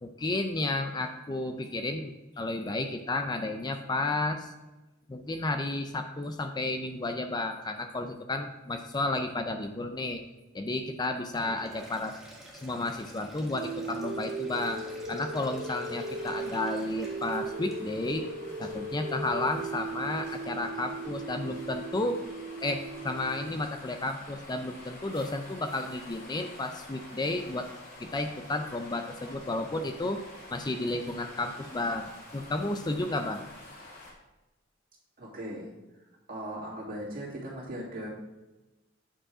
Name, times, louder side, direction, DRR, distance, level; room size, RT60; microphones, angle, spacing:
voice 1, 0.0-4.5 5.1-10.2 10.5-12.2 12.5-18.2 18.6-22.2 22.6-27.7 28.0-30.2 30.5-32.1 32.3-33.4, left 2 dB, 20° left, 6 dB, 0.5 m, -32 dB
Sink (filling or washing), 11.2-18.1, right 1 dB, ahead, 1.4 m, -50 dB
sound 1, 13.5-23.5, right 3 dB, 80° right, 0.6 m, -37 dB
sound 2, 15.9-34.1, left 2 dB, 45° left, 2.9 m, -49 dB
voice 2, 35.2-35.7 36.3-38.1, right 1 dB, 50° right, -5 dB, 2.6 m, -38 dB
8.8 x 5.2 x 4.8 m, 1.1 s
head